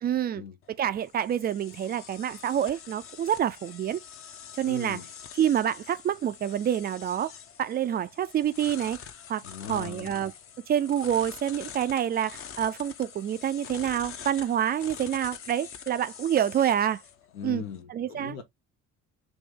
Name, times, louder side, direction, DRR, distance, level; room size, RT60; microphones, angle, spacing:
voice 1, 0.0-4.0 4.6-5.0 5.3-7.3 7.6-9.0 9.3-9.4 9.7-10.3 10.7-17.0 17.4-17.6 17.9-18.4, right 10 dB, 25° right, 0.4 m, -27 dB
sound 1, 0.6-17.8, left 7 dB, 35° left, 0.7 m, -45 dB
voice 2, 4.6-5.1 9.4-10.1 17.3-18.4, left 7 dB, 70° left, 0.8 m, -39 dB
5.2 x 2.7 x 3.4 m
figure-of-eight pair, 55°, 41 cm